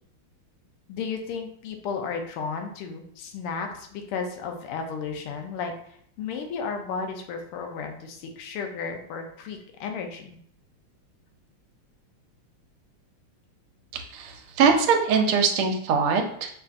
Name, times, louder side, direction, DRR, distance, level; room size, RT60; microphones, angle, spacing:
voice 1, 0.9-5.7 6.2-10.4, left 5 dB, 90° left, 4 dB, 1.6 m, -33 dB
voice 2, 13.9-16.5, right 5 dB, 85° right, 4 dB, 1.5 m, -22 dB
5.5 x 2.6 x 2.4 m, 0.67 s
omnidirectional pair, 2.4 m